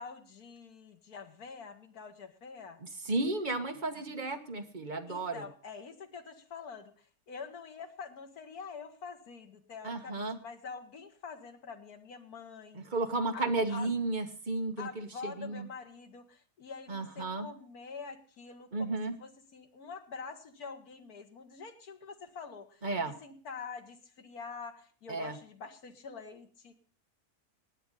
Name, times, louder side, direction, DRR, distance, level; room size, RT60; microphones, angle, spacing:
voice 1, 0.0-2.8 5.1-12.8 13.3-13.9 14.8-22.9 23.2-26.7, left 5 dB, 90° left, 6 dB, 2.0 m, -46 dB
voice 2, 3.0-5.4 9.8-10.4 12.7-15.7 16.9-17.5 18.7-19.1 22.8-23.1 25.1-25.3, right 2 dB, 35° right, 6 dB, 1.5 m, -33 dB
19.0 x 8.0 x 5.4 m, 0.43 s
omnidirectional pair, 1.5 m